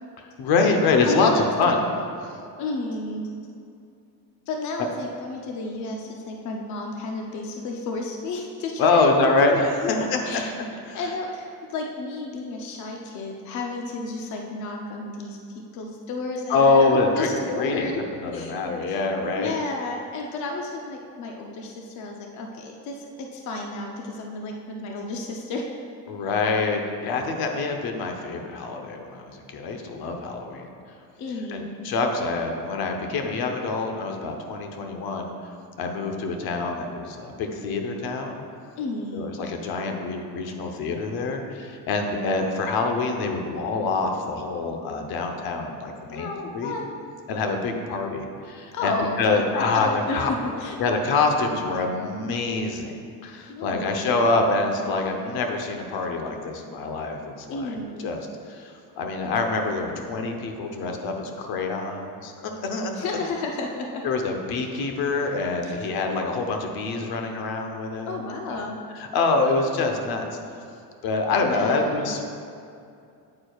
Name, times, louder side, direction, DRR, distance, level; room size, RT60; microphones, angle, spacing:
voice 1, 0.2-1.8 4.8-4.9 8.8-10.5 10.9-11.0 16.5-17.9 18.2-19.5 26.1-30.7 31.5-35.3 35.8-38.4 39.1-46.7 47.3-50.3 50.8-53.0 53.2-57.7 58.0-63.0 64.0-68.6 68.9-70.3 71.0-72.2, left 3 dB, 80° left, 3 dB, 0.9 m, -25 dB
voice 2, 1.1-1.7 2.6-3.2 4.5-10.5 10.9-18.5 18.9-19.0 19.4-25.7 31.2-31.9 38.8-39.3 46.1-46.8 48.7-50.8 53.5-54.3 57.5-58.1 62.9-64.1 65.6-65.9 68.1-68.8 71.4-72.1, left 3 dB, 55° left, 1 dB, 0.6 m, -32 dB
8.8 x 8.6 x 2.4 m, 2.4 s
cardioid pair, 175°, 36 cm